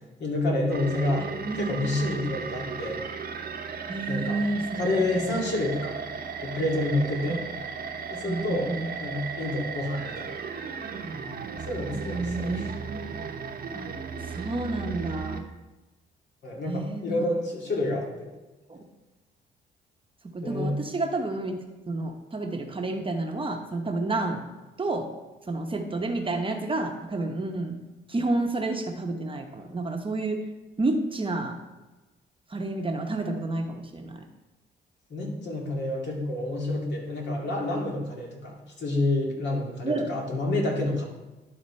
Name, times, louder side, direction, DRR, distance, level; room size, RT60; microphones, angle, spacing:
voice 1, 0.2-1.3 1.6-3.0 4.1-4.4 4.7-6.0 6.4-7.4 8.1-8.7 9.0-10.3 11.7-12.6 16.4-18.3 20.4-20.8 35.1-41.0, left 2 dB, 60° left, -1 dB, 2.3 m, -28 dB
sound 1, 0.7-15.4, right 6 dB, 50° right, 1.0 m, -36 dB
voice 2, 1.2-1.7 3.9-5.3 7.2-7.4 8.3-8.9 11.9-13.1 13.7-13.9 14.2-15.5 16.7-17.3 18.7-18.8 20.3-21.5 21.9-24.4 24.8-25.1 25.5-27.8 28.1-30.4 30.8-31.6 32.5-34.2 39.8-40.1, right 2 dB, 25° right, 4 dB, 0.9 m, -30 dB
11.0 x 4.3 x 4.3 m, 1.1 s
cardioid pair, 90°, 20 cm